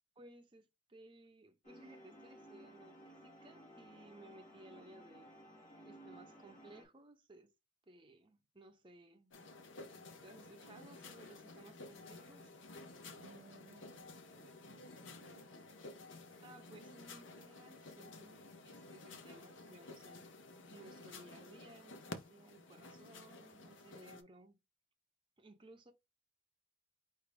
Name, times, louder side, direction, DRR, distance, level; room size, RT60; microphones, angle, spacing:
voice 1, 0.2-5.3 5.8-7.5 7.9-9.5 9.8-12.6 16.4-20.3 20.7-24.6 25.4-25.9, right 2 dB, 25° right, 0.7 m, -59 dB
sound 1, 1.6-6.8, right 1 dB, 40° left, 2.0 m, -57 dB
sound 2, 9.3-24.2, left 2 dB, 85° left, 0.7 m, -53 dB
voice 2, 13.2-15.5, right 4 dB, 50° right, 0.4 m, -62 dB
4.9 x 2.7 x 3.3 m
head